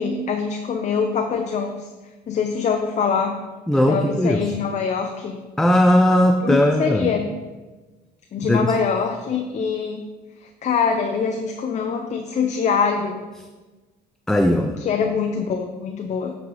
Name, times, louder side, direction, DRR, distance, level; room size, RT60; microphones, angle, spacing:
voice 1, 0.0-1.8 2.3-3.4 3.9-5.4 6.4-7.3 8.3-10.0 10.4-13.3 14.8-16.3, left 6 dB, 45° left, 4 dB, 0.6 m, -24 dB
voice 2, 3.7-4.5 5.6-7.1 8.4-8.7 14.3-14.8, left 1 dB, 5° left, 4 dB, 0.4 m, -18 dB
9.1 x 4.1 x 4.8 m, 1.2 s
cardioid pair, 110°, 17 cm